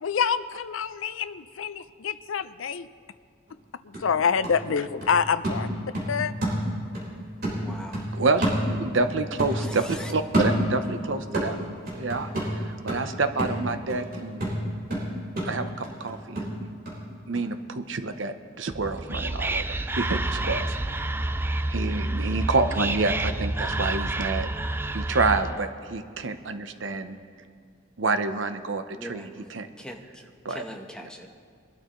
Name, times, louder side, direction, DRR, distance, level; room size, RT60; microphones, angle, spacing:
voice 1, 0.0-2.9 3.8-5.7 6.1-6.3, left 6 dB, 85° left, 14 dB, 0.5 m, -26 dB
sound 1, 3.5-3.6 3.9-7.1 7.4-9.1 9.4-11.0 11.3-17.0 17.3-17.4, right 1 dB, 50° right, 4.5 m, -29 dB
voice 2, 7.6-8.0 9.5-10.1 29.0-29.3 29.8-30.0 30.5-31.3, equal, 5° left, 2 dB, 1.0 m, -40 dB
voice 3, 8.1-11.6 11.9-14.5 15.4-16.7 17.3-19.6 19.9-20.8 21.7-24.5 24.9-27.2 28.0-29.7 30.4-30.6, right 3 dB, 70° right, 9 dB, 0.8 m, -28 dB
Whispering, 18.7-25.6, right 2 dB, 10° right, 0.3 m, -29 dB
22.5 x 12.5 x 3.1 m, 2.2 s
head